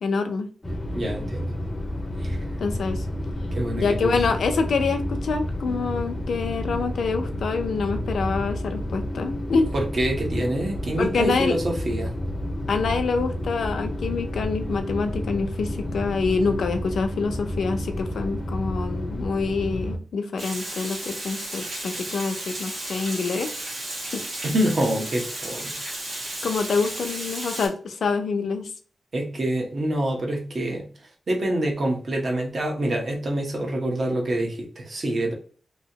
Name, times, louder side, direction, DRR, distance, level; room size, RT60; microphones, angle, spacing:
voice 1, 0.0-0.5 2.6-3.0 3.8-9.7 11.0-11.6 12.7-23.5 24.1-24.2 26.4-28.7, left 4 dB, 75° left, 6 dB, 0.5 m, -26 dB
sound 1, 0.6-20.0, left 1 dB, 20° left, 0.6 m, -30 dB
voice 2, 0.9-1.5 2.2-2.4 3.5-4.1 9.7-12.1 24.4-25.8 29.1-30.9 31.3-35.3, right 1 dB, 45° right, 1 dB, 0.9 m, -26 dB
Water, 20.4-27.7, right 1 dB, 60° right, 1.5 m, -34 dB
3.0 x 2.8 x 2.8 m, 0.42 s
wide cardioid pair, 140°, 0 cm